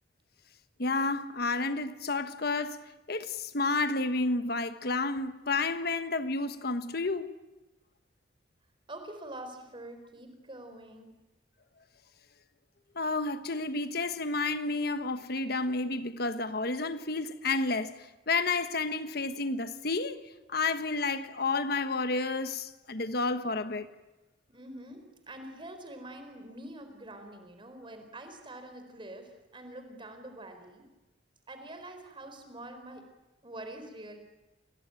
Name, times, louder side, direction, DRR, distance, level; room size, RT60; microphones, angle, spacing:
voice 1, 0.8-2.8 3.1-7.3 12.9-20.2 20.5-23.9, left 3 dB, 55° left, 1.3 m, -31 dB
voice 2, 8.9-11.1 24.5-30.9 31.5-33.1 33.4-34.2, right 1 dB, 25° right, 4.1 m, -45 dB
29.0 x 20.0 x 9.1 m
head